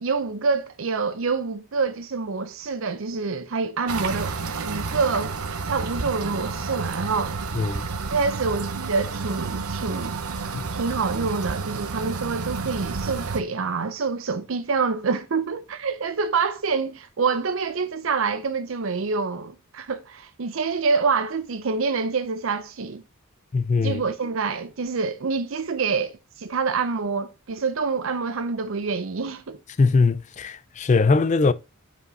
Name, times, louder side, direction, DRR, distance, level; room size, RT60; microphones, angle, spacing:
voice 1, 0.0-4.4 4.7-5.4 5.6-7.4 8.1-23.0 23.8-29.6, right 4 dB, 65° right, 0.6 m, -26 dB
sound 1, 3.9-13.4, right 4 dB, 90° right, 0.9 m, -30 dB
voice 2, 7.6-7.9 10.5-10.6 23.5-24.0 29.8-31.5, left 4 dB, 35° left, 0.4 m, -21 dB
5.5 x 5.1 x 3.9 m
head